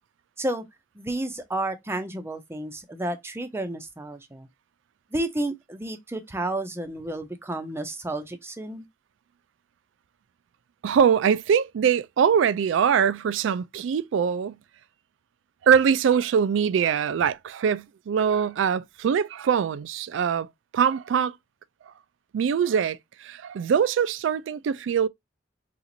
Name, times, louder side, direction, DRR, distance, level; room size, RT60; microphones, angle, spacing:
voice 1, 1.0-4.5 5.1-8.8, right 1 dB, 15° right, 0.5 m, -31 dB
voice 2, 10.8-14.6 15.6-20.5 20.7-21.4 22.3-25.1, right 7 dB, 75° right, 0.3 m, -23 dB
2.9 x 2.4 x 3.8 m
head